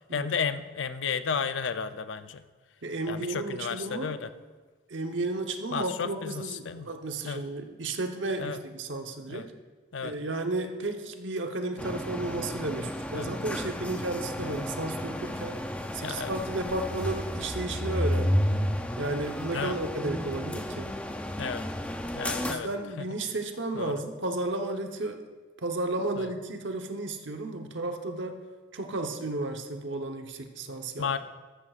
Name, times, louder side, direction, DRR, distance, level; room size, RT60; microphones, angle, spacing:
voice 1, 0.1-2.4 3.1-4.3 5.7-6.9 7.3-7.4 8.4-8.6 9.3-9.4 9.9-10.1 13.1-13.3 14.4-14.5 16.0-16.3 19.5-19.8 21.4-21.6 22.1-22.7 23.0-23.1 23.7-23.9 31.0-31.2, left 6 dB, 80° left, 11 dB, 0.5 m, -33 dB
voice 2, 2.8-4.2 4.9-9.5 10.0-15.6 15.9-18.5 19.0-21.0 22.4-25.3 25.6-28.4 28.7-31.1, right 2 dB, 80° right, 5 dB, 1.0 m, -33 dB
sound 1, 11.8-22.5, equal, 5° left, 0.5 m, -32 dB
14.0 x 13.0 x 2.5 m, 1.4 s
head